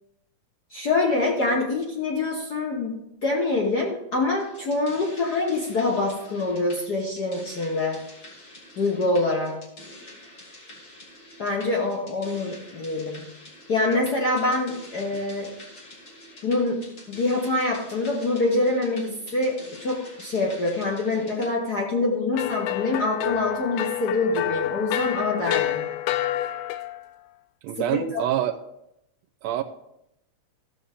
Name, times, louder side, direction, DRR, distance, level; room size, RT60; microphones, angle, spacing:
voice 1, 0.7-8.1 8.8-9.6 11.4-13.2 13.7-15.5 16.4-25.9 28.1-28.2, left 2 dB, 65° left, -1 dB, 0.9 m, -25 dB
sound 1, 4.3-21.5, left 1 dB, 35° left, 2.3 m, -46 dB
sound 2, 22.3-27.0, left 13 dB, 90° left, 2.0 m, -28 dB
voice 2, 27.6-28.5 29.4-29.6, right 12 dB, 80° right, 9 dB, 1.6 m, -25 dB
14.0 x 7.1 x 3.5 m, 0.83 s
omnidirectional pair, 3.4 m